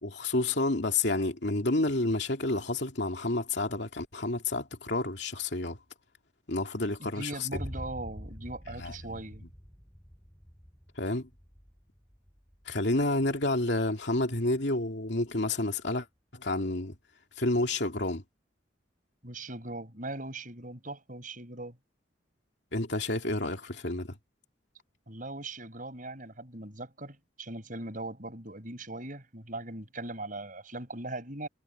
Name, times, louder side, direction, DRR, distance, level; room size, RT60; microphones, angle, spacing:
voice 1, 0.0-5.8 6.5-7.5 8.7-9.2 11.0-11.3 12.7-16.1 16.3-17.0 17.4-18.2 22.7-24.2, left 2 dB, 65° left, 2.7 m, -30 dB
voice 2, 7.0-9.4 19.2-21.8 25.1-31.5, right 2 dB, 45° right, 7.3 m, -40 dB
Boom, 7.5-15.4, equal, 10° left, 4.9 m, -47 dB
head